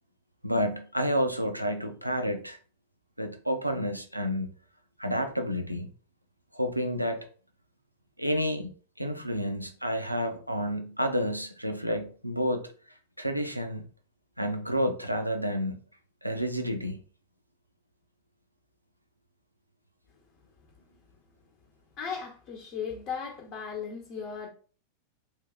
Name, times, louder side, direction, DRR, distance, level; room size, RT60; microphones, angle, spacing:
voice 1, 0.4-2.6 3.2-4.5 5.0-5.9 6.5-7.3 8.2-8.7 9.0-12.7 13.2-13.8 14.4-15.8 16.2-17.0, equal, 90° right, 0.5 m, -30 dB
voice 2, 22.0-24.5, left 6 dB, 40° left, 0.9 m, -36 dB
3.2 x 2.8 x 3.6 m
figure-of-eight pair, 90°, 0 cm